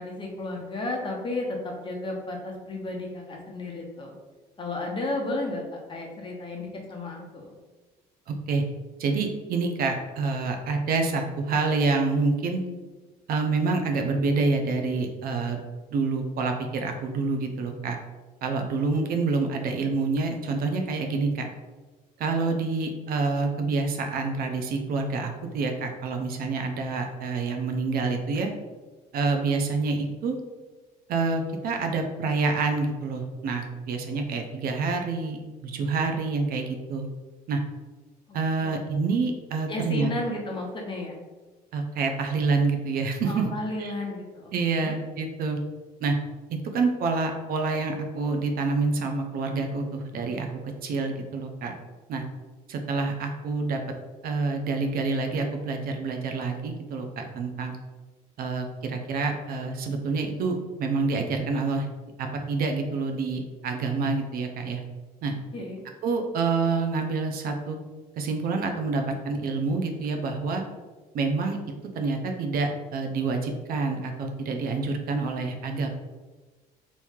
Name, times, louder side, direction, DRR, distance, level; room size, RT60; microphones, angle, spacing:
voice 1, 0.0-4.1 4.6-7.5 38.6-38.9 39.7-41.1 43.2-44.9 65.5-65.8, left 2 dB, 30° left, 0 dB, 0.8 m, -33 dB
voice 2, 8.3-8.6 9.0-12.6 13.3-15.6 15.9-18.0 18.4-21.5 22.2-28.5 29.1-30.4 31.1-37.1 37.5-37.6 38.3-40.1 41.7-43.5 43.8-43.9 44.5-45.6 46.0-46.2 46.5-50.5 50.8-51.7 52.1-52.2 52.7-53.8 54.2-57.7 58.4-61.9 62.2-64.8 65.2-65.3 66.0-67.8 68.2-70.6 71.1-71.6 71.9-75.9, right 4 dB, 60° right, 4 dB, 0.5 m, -27 dB
3.0 x 2.6 x 3.5 m, 1.3 s
cardioid pair, 110°, 17 cm